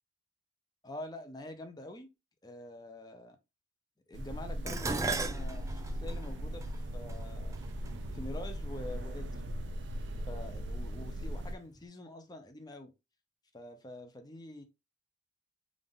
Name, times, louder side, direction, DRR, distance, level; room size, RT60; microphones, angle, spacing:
voice 1, 0.8-2.1 2.4-3.4 4.1-7.6 8.1-9.5 10.3-12.9 13.5-14.6, left 1 dB, 20° left, 0.6 m, -46 dB
sound 1, 4.1-11.5, equal, 75° right, 0.5 m, -38 dB
Dishes pots and pans, 4.7-9.0 9.9-10.3 10.7-11.5 11.8-11.9, right 3 dB, 15° right, 0.4 m, -39 dB
3.7 x 2.5 x 3.6 m
head